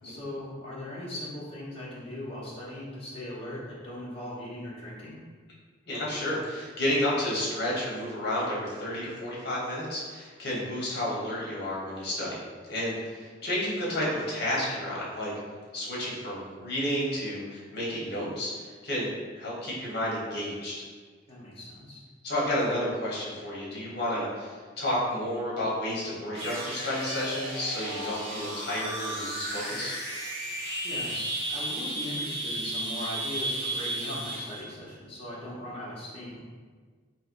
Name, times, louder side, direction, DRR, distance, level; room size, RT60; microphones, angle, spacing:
voice 1, 0.0-5.2 21.3-22.0 30.4-30.5 30.8-36.4, left 1 dB, 30° left, -7 dB, 0.9 m, -39 dB
voice 2, 5.9-12.3 12.7-15.3 15.7-19.1 19.4-20.9 22.2-30.0, left 1 dB, 55° left, -6 dB, 1.0 m, -31 dB
sound 1, 26.3-34.6, right 1 dB, 65° right, 1.1 m, -34 dB
3.3 x 3.1 x 2.5 m, 1.5 s
head